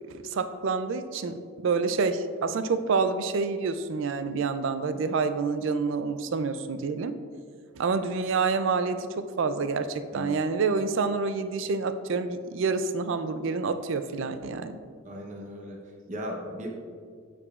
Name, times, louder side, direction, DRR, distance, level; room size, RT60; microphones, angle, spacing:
voice 1, 0.1-1.4 1.6-7.1 7.8-14.8, right 4 dB, 60° right, 10 dB, 0.4 m, -28 dB
voice 2, 15.0-16.7, equal, 35° right, 0 dB, 0.8 m, -37 dB
11.5 x 4.8 x 2.4 m, 2.1 s
head